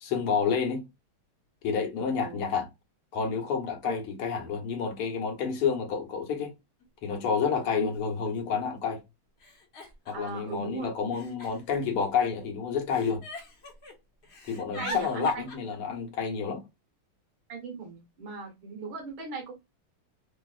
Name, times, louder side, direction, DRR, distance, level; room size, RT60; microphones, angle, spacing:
voice 1, 0.0-0.9 1.6-2.7 3.1-6.5 7.0-9.0 10.1-13.2 14.5-16.6, left 6 dB, 85° left, 1.9 m, -29 dB
voice 2, 2.0-2.4 3.8-3.9 7.8-7.9 10.1-10.9 14.8-15.4 17.5-19.5, right 4 dB, 65° right, 1.8 m, -38 dB
Giggle, 6.8-6.9 7.9-8.0 8.2-8.8 9.4-10.5 11.1-12.4 12.9-13.9 14.2-15.6, left 1 dB, 55° left, 0.7 m, -42 dB
4.5 x 2.0 x 2.3 m
omnidirectional pair, 2.4 m